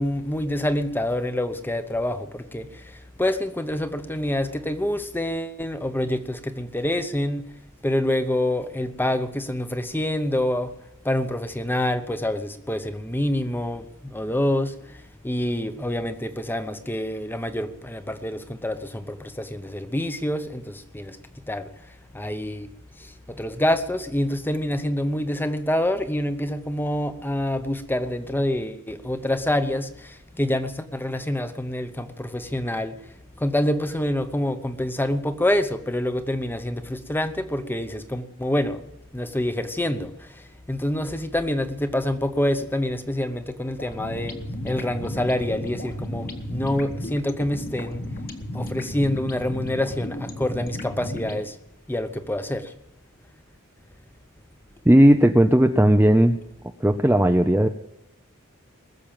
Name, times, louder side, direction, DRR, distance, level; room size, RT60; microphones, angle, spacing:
voice 1, 0.0-2.7 3.2-7.4 7.8-10.7 11.0-14.7 15.2-21.2 21.5-21.7 22.1-22.7 23.3-32.9 33.4-38.8 39.1-40.1 40.7-44.4 44.6-48.0 48.5-51.5 51.9-52.6, left 1 dB, 10° left, 10 dB, 0.9 m, -26 dB
sound 1, 43.8-51.4, left 1 dB, 40° left, 1.8 m, -34 dB
voice 2, 54.9-56.4 56.8-57.7, right 1 dB, 10° right, 5 dB, 0.6 m, -16 dB
20.5 x 7.2 x 8.9 m, 0.83 s
head